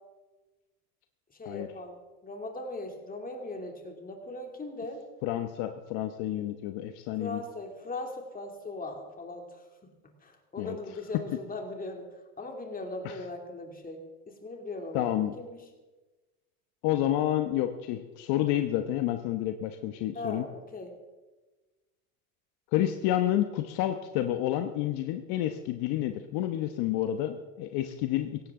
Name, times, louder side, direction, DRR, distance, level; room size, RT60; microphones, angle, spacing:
voice 1, 1.4-5.0 7.2-9.6 10.2-12.1 12.4-15.1 15.4-15.6 20.1-20.9, left 2 dB, 20° left, 3 dB, 2.9 m, -39 dB
voice 2, 5.2-7.4 10.6-10.8 13.0-13.1 14.9-15.3 16.8-20.5 22.7-28.4, left 12 dB, 60° left, 7 dB, 1.1 m, -29 dB
17.5 x 15.5 x 3.8 m, 1.2 s
supercardioid pair, 100°, 43 cm